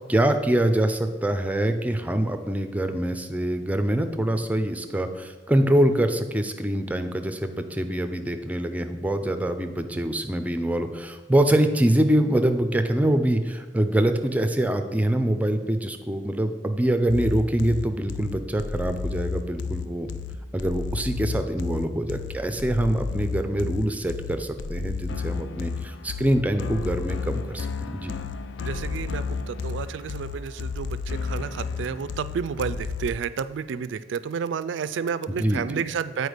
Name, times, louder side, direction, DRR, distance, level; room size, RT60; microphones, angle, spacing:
voice 1, 0.1-20.1 20.5-28.1 35.3-35.8, right 1 dB, 10° right, 8 dB, 0.4 m, -24 dB
sound 1, 17.1-33.1, left 4 dB, 70° left, 0.4 m, -32 dB
voice 2, 28.6-36.3, right 6 dB, 90° right, 15 dB, 0.3 m, -31 dB
8.0 x 4.6 x 5.0 m, 1.3 s
head